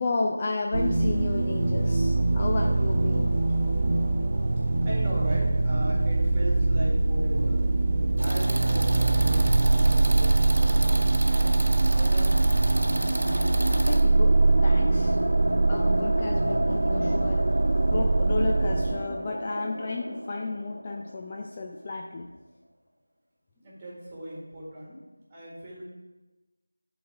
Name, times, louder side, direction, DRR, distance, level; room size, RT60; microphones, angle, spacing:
voice 1, 0.0-3.3 13.9-15.2 15.7-17.5 17.9-22.3, left 3 dB, 25° left, 1 dB, 0.4 m, -32 dB
sound 1, 0.7-18.9, right 2 dB, 35° right, 0.6 m, -23 dB
voice 2, 4.8-7.6 8.2-12.4 23.6-25.8, equal, 15° right, -6 dB, 1.8 m, -38 dB
sound 2, 8.2-14.0, right 1 dB, 60° right, 1.0 m, -31 dB
sound 3, 11.6-22.0, equal, 85° right, 0.5 m, -33 dB
10.0 x 4.0 x 4.7 m, 1.1 s
figure-of-eight pair, 170°, 0 cm